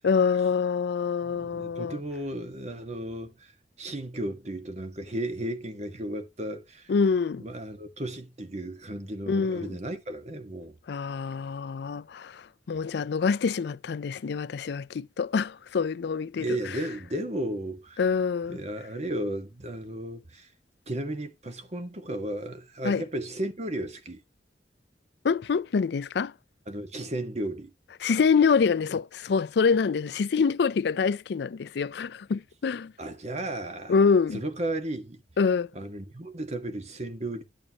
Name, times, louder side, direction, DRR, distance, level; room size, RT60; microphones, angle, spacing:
voice 1, 0.0-2.0 6.9-7.4 9.3-9.8 10.9-16.8 18.0-18.6 22.8-23.0 25.2-26.3 28.0-32.9 33.9-34.4 35.4-35.7, left 5 dB, 70° left, 0.4 m, -26 dB
voice 2, 1.2-3.5 3.8-6.9 7.4-10.8 16.4-18.0 18.5-20.5 20.9-24.2 26.7-27.7 33.0-33.9 34.3-35.2 35.7-37.4, right 1 dB, 40° right, 1.5 m, -34 dB
11.0 x 6.9 x 2.9 m
head